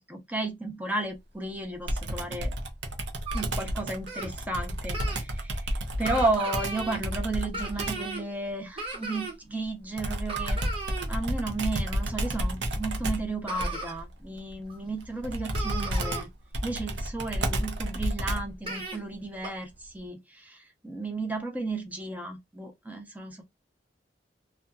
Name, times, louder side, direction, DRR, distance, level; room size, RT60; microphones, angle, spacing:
voice 1, 0.1-2.5 3.3-10.6 11.1-16.3 16.6-23.4, right 2 dB, 10° right, 0.6 m, -33 dB
Computer keyboard, 1.9-8.1 10.0-18.6, right 1 dB, 70° right, 0.6 m, -31 dB
sound 1, 3.3-3.5 4.1-4.3 4.9-5.2 6.0-7.0 7.5-8.3 8.8-9.3 10.3-11.1 12.7-12.8 13.5-13.9 14.7-14.8 15.2-15.3 15.5-16.2 17.9-18.0 18.6-19.0 19.4-19.5, right 3 dB, 30° right, 1.1 m, -36 dB
2.7 x 2.2 x 2.3 m
head